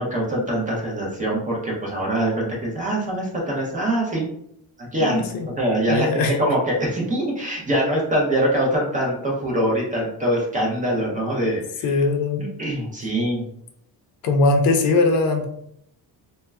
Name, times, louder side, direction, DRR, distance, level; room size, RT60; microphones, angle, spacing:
voice 1, 0.0-4.3 4.8-5.3 5.6-11.9 12.4-13.4, right 1 dB, 20° right, -3 dB, 0.4 m, -23 dB
voice 2, 5.0-5.5 5.9-6.4 11.8-12.5 14.2-15.4, left 3 dB, 65° left, 4 dB, 0.5 m, -20 dB
2.1 x 2.1 x 3.3 m, 0.72 s
cardioid pair, 175°, 39 cm